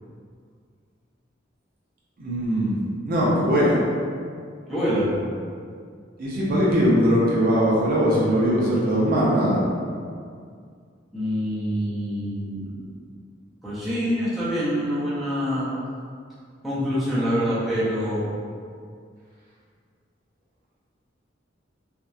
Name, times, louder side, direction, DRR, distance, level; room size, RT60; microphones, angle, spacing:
voice 1, 2.2-2.8 3.0-3.8 6.2-9.6, equal, 50° right, -6 dB, 0.4 m, -20 dB
voice 2, 4.7-5.1 11.1-12.8 13.6-15.7 16.6-18.3, equal, ahead, -12 dB, 0.6 m, -25 dB
2.7 x 2.0 x 2.3 m, 2.2 s
head